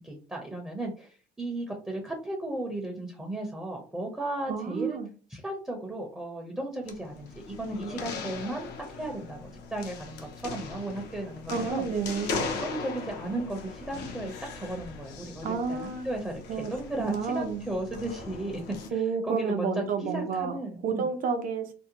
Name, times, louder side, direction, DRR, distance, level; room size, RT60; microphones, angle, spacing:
voice 1, 0.0-5.0 5.3-11.8 12.5-21.1, right 2 dB, 5° right, 0.5 m, -35 dB
voice 2, 4.5-5.1 11.5-12.4 15.4-16.1 16.5-16.7 17.0-17.7 18.9-20.5 20.8-21.7, right 5 dB, 55° right, 0.5 m, -30 dB
sound 1, 6.8-18.9, left 4 dB, 75° left, 0.6 m, -39 dB
2.6 x 2.1 x 2.8 m
cardioid pair, 110°, 17 cm